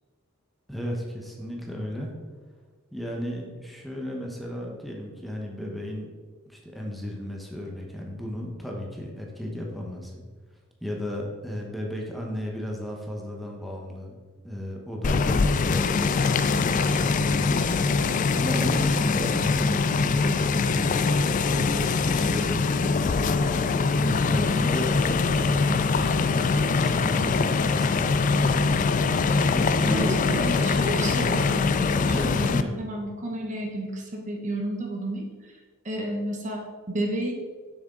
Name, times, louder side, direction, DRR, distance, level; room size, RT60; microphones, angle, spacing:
voice 1, 0.7-2.1 2.9-6.1 6.5-10.2 10.8-14.1 14.4-17.7 18.3-23.3 24.0-24.9 25.2-28.5 29.5-30.9 32.1-32.8, equal, ahead, -1 dB, 1.0 m, -34 dB
sound 1, 15.0-32.6, left 4 dB, 40° left, 0.3 m, -23 dB
voice 2, 29.8-31.6 32.1-35.6 35.8-37.3, right 1 dB, 35° right, 1 dB, 0.9 m, -32 dB
7.0 x 6.1 x 3.7 m, 1.4 s
head